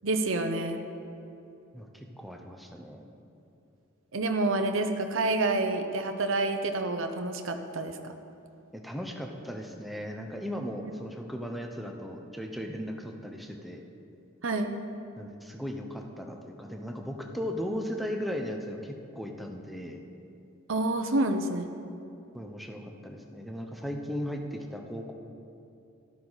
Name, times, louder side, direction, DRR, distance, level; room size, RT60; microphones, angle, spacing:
voice 1, 0.0-0.8 4.1-8.0 14.4-14.7 20.7-21.7, right 2 dB, 70° right, 5 dB, 0.8 m, -28 dB
voice 2, 1.7-3.1 8.7-13.8 15.2-20.0 22.3-25.1, equal, ahead, 2 dB, 0.8 m, -37 dB
13.5 x 11.5 x 4.1 m, 2.8 s
head